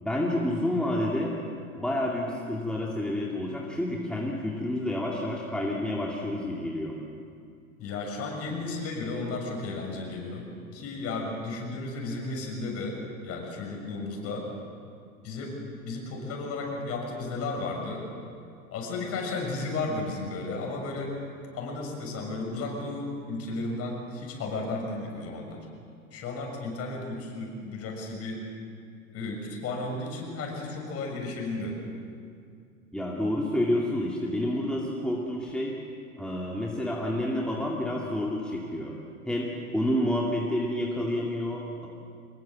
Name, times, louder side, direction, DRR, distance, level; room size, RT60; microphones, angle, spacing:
voice 1, 0.0-1.4 1.8-6.9 32.9-35.8 36.2-39.0 39.3-41.9, left 1 dB, ahead, -3 dB, 2.4 m, -29 dB
voice 2, 7.8-10.5 10.7-14.5 15.2-18.1 18.7-21.1 21.5-25.7 26.1-28.5 29.1-31.8, left 3 dB, 35° left, 1 dB, 6.8 m, -34 dB
25.0 x 21.5 x 7.7 m, 2.3 s
figure-of-eight pair, 95°, 42 cm